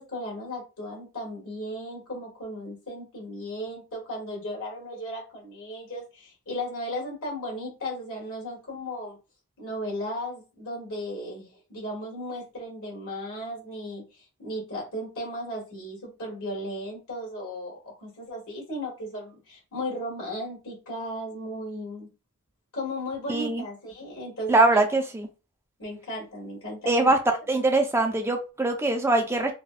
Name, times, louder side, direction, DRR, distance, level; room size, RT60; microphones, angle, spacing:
voice 1, 0.0-9.2 9.6-22.1 22.7-24.8 25.8-27.1, equal, 65° left, 1.8 m, -35 dB
voice 2, 23.3-23.6 24.5-25.3 26.9-27.2 27.5-29.5, right 2 dB, 10° right, 0.4 m, -22 dB
4.0 x 2.2 x 2.4 m
head